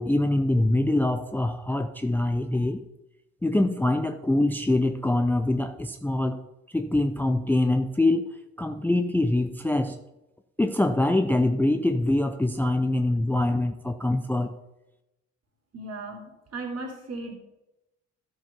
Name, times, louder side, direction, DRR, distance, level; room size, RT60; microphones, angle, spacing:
voice 1, 0.0-2.8 3.4-6.4 6.7-10.0 10.6-14.5, left 2 dB, 5° left, 7 dB, 0.6 m, -24 dB
voice 2, 15.7-17.3, right 2 dB, 45° right, 2 dB, 2.8 m, -36 dB
13.0 x 4.8 x 5.2 m, 0.94 s
hypercardioid pair, 50°, 36 cm